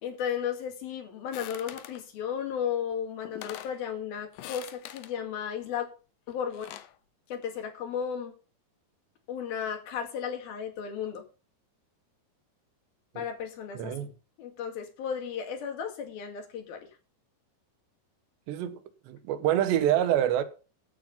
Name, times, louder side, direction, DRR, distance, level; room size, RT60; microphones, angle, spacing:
voice 1, 0.0-5.9 6.3-6.7 7.3-8.3 9.3-11.2 13.2-13.9 14.4-16.9, left 8 dB, 60° left, 3.9 m, -34 dB
sound 1, 1.3-2.0 2.9-3.0 3.2-3.8 4.3-5.1 6.3-6.9, left 12 dB, 80° left, 1.9 m, -43 dB
voice 2, 13.8-14.1 18.5-18.8 19.1-20.4, right 11 dB, 80° right, 3.4 m, -26 dB
15.0 x 7.9 x 5.5 m
omnidirectional pair, 5.0 m